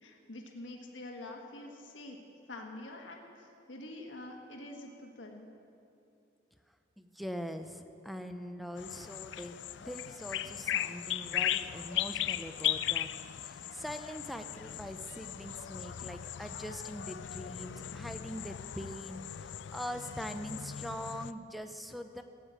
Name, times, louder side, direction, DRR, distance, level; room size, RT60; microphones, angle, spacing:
voice 1, 0.0-2.2 2.5-5.5, left 2 dB, 85° left, 1 dB, 1.5 m, -46 dB
voice 2, 7.0-22.2, equal, ahead, 8 dB, 0.6 m, -43 dB
sound 1, 8.8-21.3, left 11 dB, 70° left, 0.4 m, -37 dB
15.0 x 8.3 x 8.8 m, 2.7 s
head